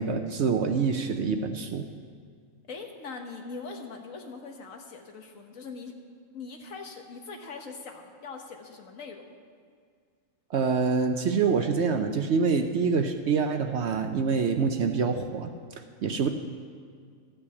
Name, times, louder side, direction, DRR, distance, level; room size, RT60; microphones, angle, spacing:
voice 1, 0.0-1.9 10.5-15.5 16.0-16.3, right 5 dB, 60° right, 6 dB, 0.8 m, -26 dB
voice 2, 2.7-5.9 6.3-9.3, left 4 dB, 65° left, 3 dB, 1.5 m, -41 dB
14.0 x 5.4 x 8.3 m, 2.1 s
omnidirectional pair, 1.5 m